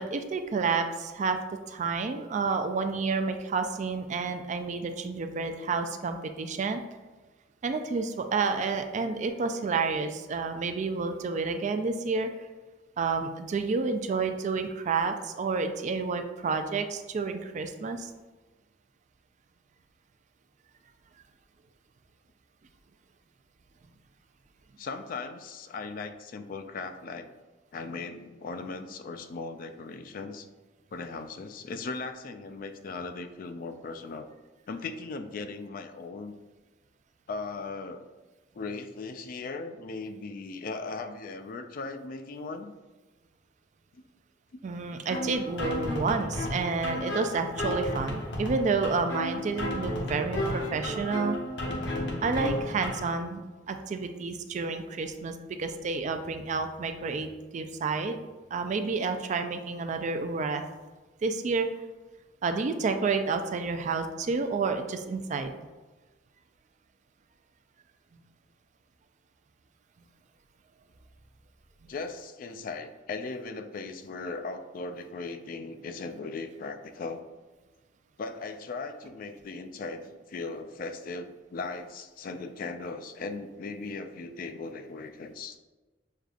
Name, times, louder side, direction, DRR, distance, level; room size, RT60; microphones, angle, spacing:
voice 1, 0.0-1.4 1.7-6.8 7.6-12.3 13.0-18.1 44.6-51.4 52.2-53.4 53.7-58.2 58.5-60.6 61.2-61.7 62.4-65.5 71.8-71.9, right 4 dB, 40° right, 7 dB, 0.3 m, -30 dB
voice 2, 24.8-27.3 27.7-30.5 30.9-34.3 34.7-36.3 37.3-38.0 38.5-42.7 71.9-77.2 78.2-85.6, left 3 dB, 50° left, 8 dB, 0.3 m, -38 dB
sound 1, 45.1-53.1, left 1 dB, 70° left, 0.8 m, -33 dB
6.5 x 2.4 x 2.4 m, 1.2 s
head